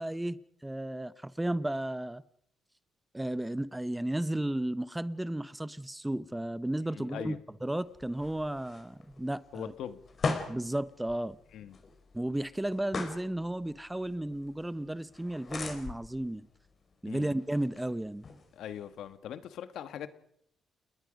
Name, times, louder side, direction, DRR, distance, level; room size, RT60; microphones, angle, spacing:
voice 1, 0.0-2.2 3.1-9.7 10.5-11.4 12.1-16.5 17.0-18.3, right 1 dB, 10° right, 0.8 m, -34 dB
voice 2, 6.9-7.4 9.5-10.0 11.5-11.8 17.1-17.3 18.5-20.1, left 9 dB, 75° left, 1.6 m, -41 dB
sound 1, 7.8-19.2, left 4 dB, 45° left, 4.4 m, -42 dB
30.0 x 20.5 x 5.3 m
cardioid pair, 90°, 0 cm